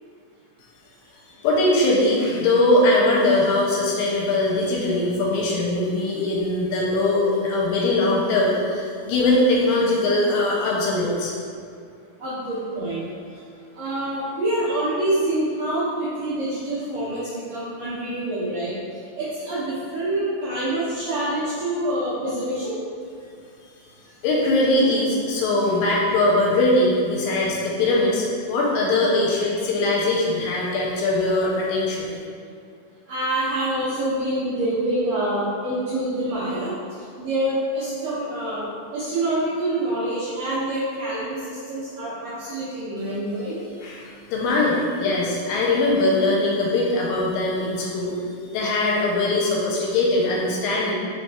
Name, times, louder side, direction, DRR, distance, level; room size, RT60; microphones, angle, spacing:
voice 1, 1.4-11.3 24.2-32.2 43.8-48.2 48.5-50.9, left 2 dB, 80° left, -4 dB, 2.2 m, -21 dB
voice 2, 12.2-13.0 13.7-18.8 19.2-22.8 33.1-36.8 37.2-43.6, right 1 dB, 85° right, -12 dB, 1.5 m, -26 dB
4.7 x 4.1 x 2.3 m, 2.3 s
omnidirectional pair, 4.2 m